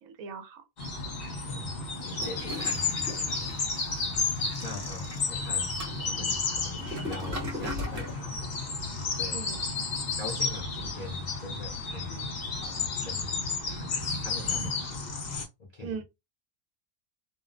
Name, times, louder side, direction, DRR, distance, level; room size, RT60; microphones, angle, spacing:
voice 1, 0.0-0.6 9.3-9.7 15.8-16.0, right 6 dB, 80° right, 1.0 m, -39 dB
sound 1, 0.8-15.4, left 4 dB, 50° left, 0.8 m, -32 dB
voice 2, 1.5-9.5 10.2-15.0 15.6-16.0, left 2 dB, 75° left, 0.3 m, -43 dB
Toilet flush, 2.0-8.2, left 1 dB, 45° right, 1.1 m, -39 dB
2.5 x 2.0 x 2.4 m
omnidirectional pair, 1.4 m